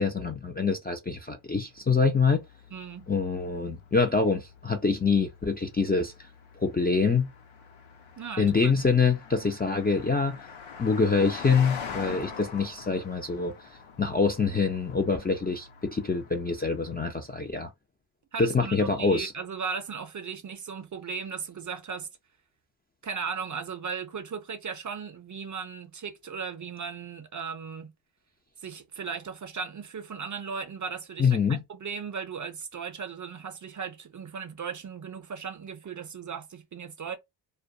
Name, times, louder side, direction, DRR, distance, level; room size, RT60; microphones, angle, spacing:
voice 1, 0.0-2.4 3.1-6.3 6.6-7.3 8.4-10.4 10.8-13.5 14.0-17.7 18.4-19.3 31.2-31.6, left 4 dB, 25° left, 0.3 m, -25 dB
Car passing by, 1.5-17.3, left 6 dB, 75° left, 0.7 m, -45 dB
voice 2, 2.7-3.1 8.2-8.7 18.3-22.1 23.0-27.9 28.6-37.2, right 6 dB, 40° right, 0.5 m, -37 dB
2.2 x 2.2 x 2.6 m
wide cardioid pair, 85°, 48 cm